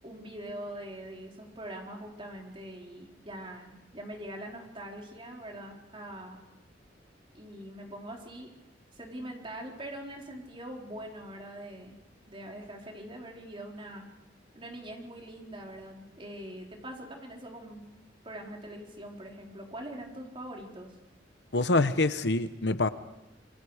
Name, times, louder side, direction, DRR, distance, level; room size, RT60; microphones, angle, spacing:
voice 1, 0.0-6.4 7.3-8.5 8.9-12.0 12.3-14.1 14.5-17.9 18.2-20.9, right 1 dB, 30° right, 4.2 m, -43 dB
voice 2, 21.5-22.9, left 2 dB, 65° left, 1.0 m, -25 dB
28.0 x 23.5 x 5.0 m
head